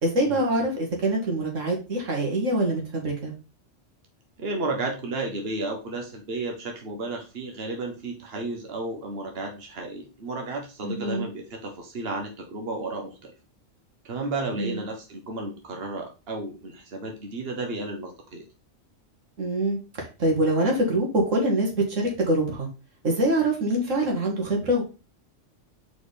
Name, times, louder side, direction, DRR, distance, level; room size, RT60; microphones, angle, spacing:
voice 1, 0.0-3.3 10.8-11.3 14.6-14.8 19.4-22.7 23.0-24.8, right 1 dB, 90° right, 0 dB, 2.2 m, -24 dB
voice 2, 4.4-13.3 14.0-18.4, right 2 dB, 55° right, 2 dB, 1.5 m, -33 dB
4.9 x 4.3 x 5.0 m, 0.31 s
omnidirectional pair, 1.3 m